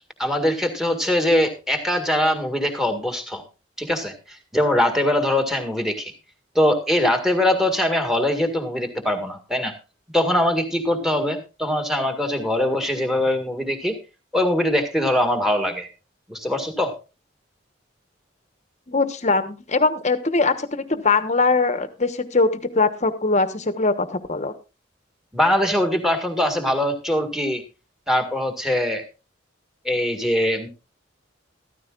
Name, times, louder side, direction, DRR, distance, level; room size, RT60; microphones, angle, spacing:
voice 1, 0.2-3.4 3.8-6.1 6.6-9.7 10.1-13.9 14.3-15.9 16.3-16.9 25.3-27.6 28.1-29.0 29.9-30.7, left 1 dB, ahead, 7 dB, 1.9 m, -22 dB
voice 2, 18.9-24.5, left 3 dB, 35° left, 11 dB, 1.1 m, -21 dB
14.5 x 14.0 x 2.4 m, 0.29 s
head